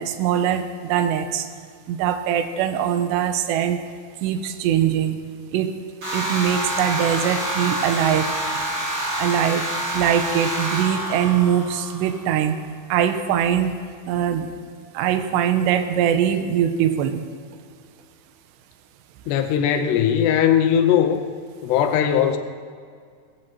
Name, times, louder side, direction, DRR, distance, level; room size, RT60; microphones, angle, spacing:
voice 1, 0.0-1.5 1.9-3.8 4.2-5.2 5.5-5.7 6.1-8.3 9.2-9.7 9.9-12.6 12.9-13.7 14.1-14.5 14.9-17.3, right 9 dB, 80° right, 9 dB, 2.8 m, -22 dB
sound 1, 6.0-12.2, right 1 dB, 25° right, 4.7 m, -27 dB
voice 2, 19.3-21.2 21.6-22.4, left 9 dB, 75° left, 7 dB, 2.6 m, -19 dB
20.0 x 14.5 x 4.5 m, 2.1 s
omnidirectional pair, 5.5 m